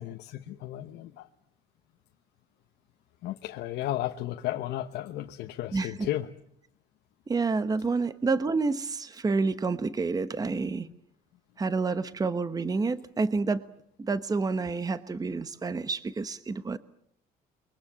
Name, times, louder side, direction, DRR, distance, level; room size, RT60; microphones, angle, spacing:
voice 1, 0.3-1.3 3.2-6.3, left 14 dB, 80° left, 1.1 m, -33 dB
voice 2, 5.7-6.1 7.3-10.9 11.6-13.6 14.0-16.8, right 4 dB, 20° right, 1.1 m, -29 dB
29.0 x 23.0 x 7.5 m
cardioid pair, 110°, 17 cm